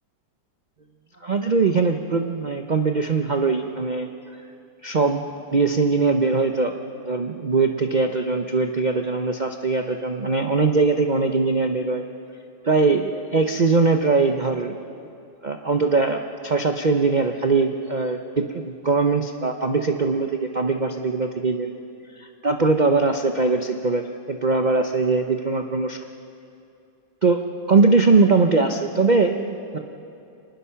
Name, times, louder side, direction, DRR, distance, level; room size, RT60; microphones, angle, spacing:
voice 1, 1.2-4.1 4.8-5.2 5.5-6.7 7.0-12.0 12.6-14.8 15.4-21.7 22.2-24.0 24.3-26.0 27.2-27.4 27.7-29.8, right 4 dB, 85° right, 5 dB, 0.4 m, -21 dB
25.0 x 20.0 x 5.8 m, 2.6 s
omnidirectional pair, 2.0 m